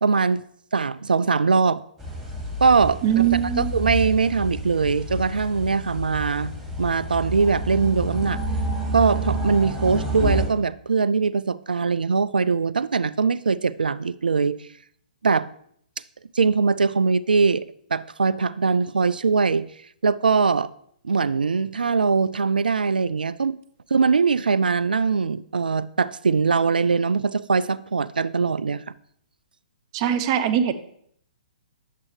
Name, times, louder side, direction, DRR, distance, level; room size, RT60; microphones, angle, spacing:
voice 1, 0.0-0.4 0.7-1.8 2.6-3.3 3.6-6.5 6.8-8.4 8.9-14.6 15.2-15.5 16.3-17.6 17.9-19.7 20.0-20.7 21.0-23.6 23.9-28.8, right 5 dB, 85° right, 0.3 m, -21 dB
sound 1, 2.0-10.4, equal, ahead, 2.2 m, -29 dB
voice 2, 3.0-3.8 29.9-30.7, right 10 dB, 40° right, 0.7 m, -21 dB
9.9 x 7.5 x 3.2 m
hypercardioid pair, 130°, 5 cm